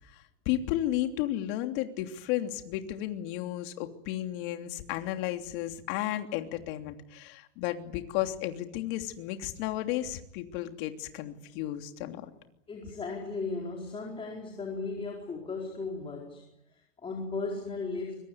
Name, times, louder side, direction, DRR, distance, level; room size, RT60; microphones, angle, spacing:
voice 1, 0.1-12.3, left 13 dB, 45° left, 5 dB, 3.1 m, -33 dB
voice 2, 12.7-18.2, left 3 dB, 15° left, -1 dB, 4.5 m, -36 dB
25.0 x 23.0 x 9.7 m, 0.85 s
supercardioid pair, 145°, 36 cm